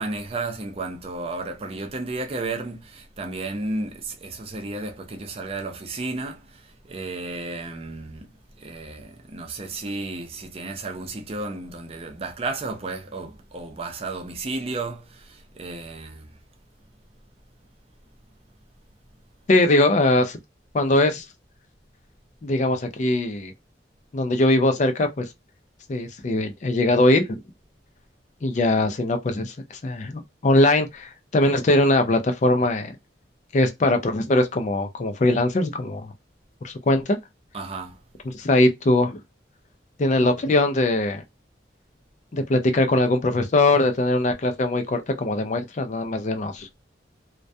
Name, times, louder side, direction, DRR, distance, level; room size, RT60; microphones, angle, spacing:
voice 1, 0.0-8.3 8.6-16.3 37.5-38.0, right 3 dB, 30° right, 0.4 m, -33 dB
voice 2, 19.5-20.4 20.7-21.2 22.4-23.5 24.1-25.3 25.9-27.4 28.4-29.5 29.8-33.0 33.5-36.1 36.6-37.2 38.3-39.2 40.0-41.2 42.3-46.7, left 2 dB, 40° left, 0.4 m, -21 dB
2.2 x 2.2 x 2.6 m
head